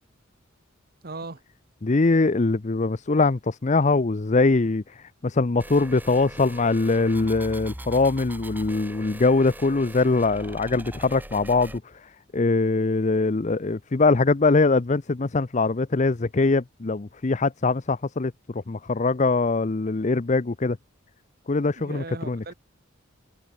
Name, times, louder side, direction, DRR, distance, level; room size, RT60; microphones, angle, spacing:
voice 1, 1.0-1.4 21.7-22.5, right 3 dB, 50° right, 1.5 m, -37 dB
voice 2, 1.8-4.8 5.2-11.8 12.3-20.8 21.5-22.4, left 3 dB, 35° left, 0.6 m, -22 dB
sound 1, 5.6-11.8, right 1 dB, 10° right, 1.9 m, -41 dB
head